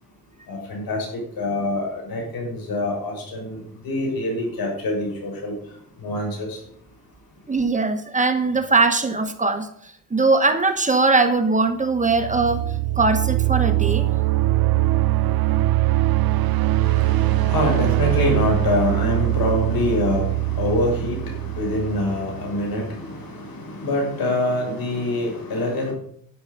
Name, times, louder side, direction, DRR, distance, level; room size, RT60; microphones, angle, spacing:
voice 1, 0.5-5.5 6.0-6.6 16.8-25.9, left 2 dB, 90° left, 0 dB, 5.8 m, -25 dB
voice 2, 7.5-14.1, right 3 dB, 20° right, 8 dB, 1.3 m, -21 dB
sound 1, 11.9-22.7, right 17 dB, 90° right, 0.6 m, -22 dB
11.5 x 10.0 x 5.2 m, 0.66 s
cardioid pair, 110°, 35 cm